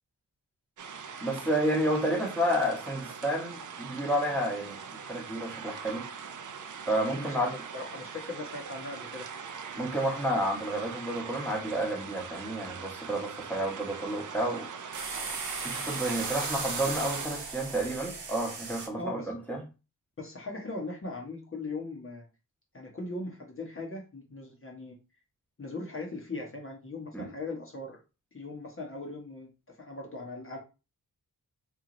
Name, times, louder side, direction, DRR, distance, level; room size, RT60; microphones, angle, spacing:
sound 1, 0.8-17.3, right 6 dB, 55° right, 0.5 m, -41 dB
voice 1, 1.2-6.1 6.9-7.5 9.7-14.7 15.6-19.6 27.1-27.3, right 1 dB, 5° left, 1.3 m, -30 dB
voice 2, 7.1-9.3 19.0-19.3 20.2-22.3 22.7-25.0 25.6-28.0 28.3-29.5 29.8-30.6, left 2 dB, 35° left, 1.1 m, -39 dB
sound 2, 14.9-18.9, right 4 dB, 85° right, 1.1 m, -36 dB
3.1 x 2.7 x 3.9 m
wide cardioid pair, 95°, 38 cm